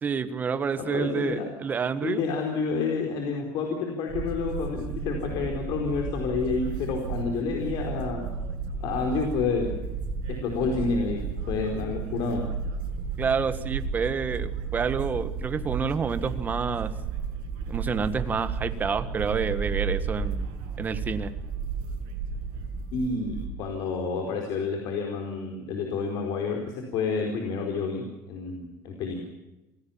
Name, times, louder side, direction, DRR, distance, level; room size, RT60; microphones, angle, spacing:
voice 1, 0.0-2.2 13.2-16.9 17.7-20.5 20.8-21.3, right 5 dB, 20° right, 10 dB, 1.6 m, -28 dB
voice 2, 0.8-1.5 2.0-8.3 8.8-9.7 10.3-12.4 22.9-29.1, left 4 dB, 55° left, 2 dB, 4.6 m, -29 dB
sound 1, 4.1-23.5, right 5 dB, 70° right, 6.2 m, -33 dB
27.5 x 18.0 x 7.3 m, 1.0 s
cardioid pair, 165°, 8 cm